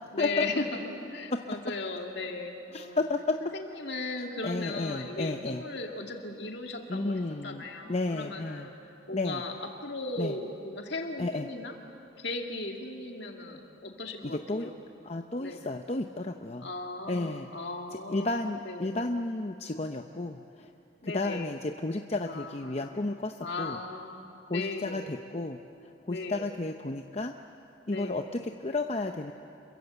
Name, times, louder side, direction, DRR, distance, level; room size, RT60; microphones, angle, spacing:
voice 1, 0.1-3.0 3.5-11.7 12.2-14.7 15.4-15.6 16.6-18.3 18.6-19.0 21.0-21.5 22.2-22.9 23.4-24.2 24.5-25.1 26.1-26.5 27.9-28.3, left 2 dB, 60° left, 2 dB, 2.5 m, -37 dB
voice 2, 2.7-3.4 4.4-5.6 6.9-8.7 9.1-9.4 10.2-10.4 11.2-11.5 14.2-14.7 15.0-16.7 17.1-17.5 18.1-20.7 21.0-23.8 24.5-25.6 26.0-27.3 27.9-29.3, left 2 dB, 35° left, 5 dB, 0.7 m, -32 dB
28.0 x 22.5 x 8.1 m, 2.8 s
head